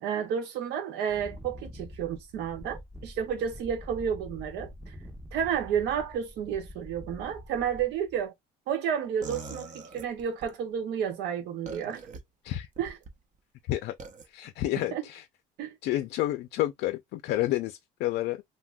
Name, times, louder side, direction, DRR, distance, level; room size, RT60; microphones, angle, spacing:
voice 1, 0.0-4.9 5.3-8.3 8.7-12.1 12.8-13.0 14.8-15.0 15.6-15.8, right 8 dB, 85° right, 1.1 m, -31 dB
Wind, 1.0-8.2, left 1 dB, 5° right, 0.7 m, -46 dB
sound 1, 9.2-10.6 11.7-12.2 12.8-13.1 14.0-14.3, right 3 dB, 50° right, 0.7 m, -42 dB
voice 2, 14.3-15.2 15.8-18.4, left 15 dB, 75° left, 0.4 m, -30 dB
2.6 x 2.1 x 3.4 m
cardioid pair, 110°, 17 cm